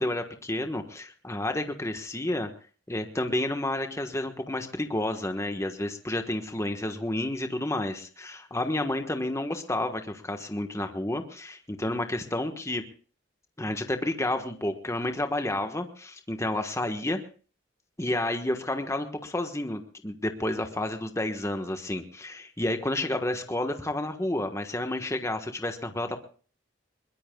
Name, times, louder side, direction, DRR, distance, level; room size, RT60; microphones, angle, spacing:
voice 1, 0.0-2.5 2.9-12.8 13.6-17.2 18.0-26.2, left 1 dB, 15° left, 6 dB, 1.3 m, -30 dB
22.0 x 21.5 x 2.3 m, 0.40 s
head